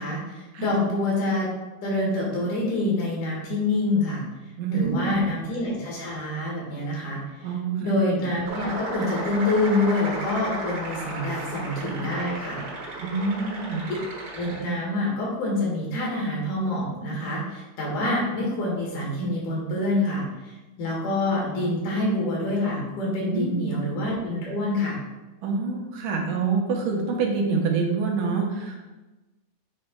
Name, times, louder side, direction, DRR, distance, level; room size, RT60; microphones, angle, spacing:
voice 1, 0.0-1.5 1.8-4.2 4.7-7.2 7.8-12.6 14.3-20.2 20.8-25.0, left 2 dB, 70° left, -4 dB, 3.2 m, -26 dB
voice 2, 4.6-5.2 7.4-7.9 11.3-11.5 13.0-13.8 23.3-23.8 25.4-28.8, right 4 dB, 85° right, 0 dB, 2.6 m, -26 dB
sound 1, 8.5-14.6, right 2 dB, 60° right, 1.7 m, -34 dB
8.4 x 3.3 x 4.5 m, 1.1 s
omnidirectional pair, 3.7 m